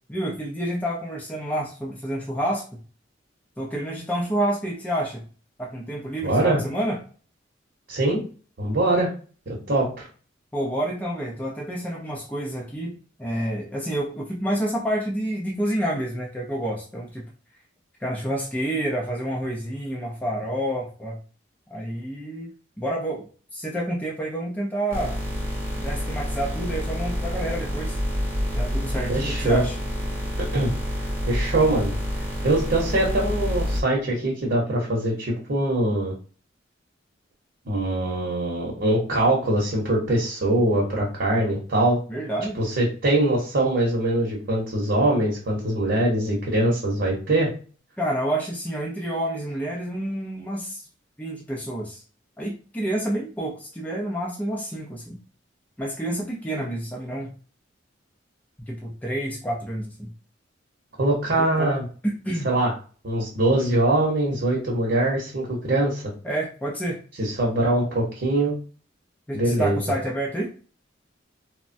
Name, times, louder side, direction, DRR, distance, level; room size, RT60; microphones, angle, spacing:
voice 1, 0.0-2.8 3.6-5.2 5.6-7.0 10.5-17.3 18.0-21.2 21.7-22.5 22.8-25.1 25.8-28.0 28.5-29.7 42.1-42.6 48.0-50.8 51.2-52.0 52.4-55.2 55.8-57.3 58.6-60.1 61.3-61.7 62.2-62.5 66.2-67.0 69.3-70.5, right 1 dB, 10° left, -3 dB, 0.5 m, -29 dB
voice 2, 6.2-6.6 7.9-8.2 8.6-9.1 9.5-10.1 29.1-29.6 30.4-30.7 31.2-32.0 32.4-36.1 37.6-42.0 42.6-47.5 61.0-61.9 62.4-62.7 63.0-66.0 67.2-68.5 69.3-69.8, right 1 dB, 55° right, -3 dB, 0.9 m, -23 dB
sound 1, 24.9-33.8, equal, 10° right, 0.8 m, -28 dB
3.2 x 2.1 x 2.6 m, 0.38 s
head